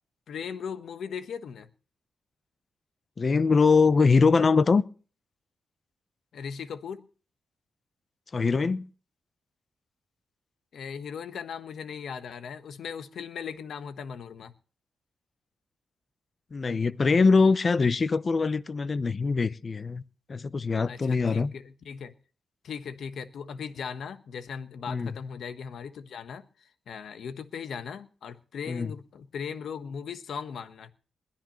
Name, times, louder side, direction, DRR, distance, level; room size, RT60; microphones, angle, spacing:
voice 1, 0.3-1.7 6.3-7.1 10.7-14.5 20.9-22.1 22.6-26.4 26.9-30.9, left 6 dB, 75° left, 1.2 m, -38 dB
voice 2, 3.2-4.8 8.3-8.8 16.5-20.0 20.3-21.5 24.9-25.1 28.7-28.9, left 4 dB, 40° left, 0.8 m, -23 dB
21.0 x 13.0 x 3.1 m
cardioid pair, 80°, 0 cm